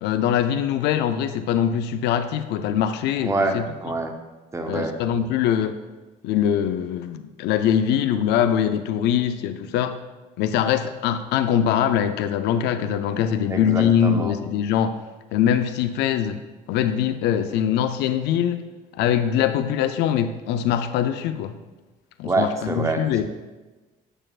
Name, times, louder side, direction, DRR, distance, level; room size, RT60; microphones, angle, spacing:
voice 1, 0.0-3.7 4.7-5.8 6.2-10.0 10.4-15.0 15.3-16.4 16.7-18.6 18.9-21.6 22.2-23.3, left 9 dB, 85° left, 10 dB, 0.5 m, -22 dB
voice 2, 3.2-4.1 4.5-4.9 13.5-14.3 22.2-23.0, right 2 dB, 15° right, 4 dB, 0.7 m, -25 dB
8.8 x 6.6 x 2.4 m, 1.2 s
cardioid pair, 110°, 17 cm